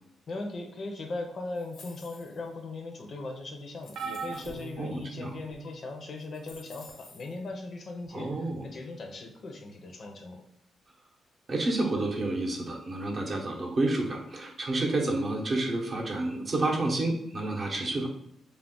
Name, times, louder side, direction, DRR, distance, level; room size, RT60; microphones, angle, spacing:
voice 1, 0.3-10.4, left 2 dB, 45° left, 4 dB, 0.5 m, -39 dB
sound 1, 1.5-2.5 3.2-3.3 3.8-4.7 5.6-5.7 6.2-7.4, left 3 dB, 85° left, 0.7 m, -52 dB
sound 2, 3.9-5.7 6.5-6.7 8.0-8.1, right 5 dB, 80° right, 0.5 m, -40 dB
voice 2, 4.8-5.3 8.1-8.7 11.5-18.1, right 2 dB, 40° right, 0 dB, 0.7 m, -29 dB
2.4 x 2.1 x 3.7 m, 0.74 s
cardioid pair, 110°, 0 cm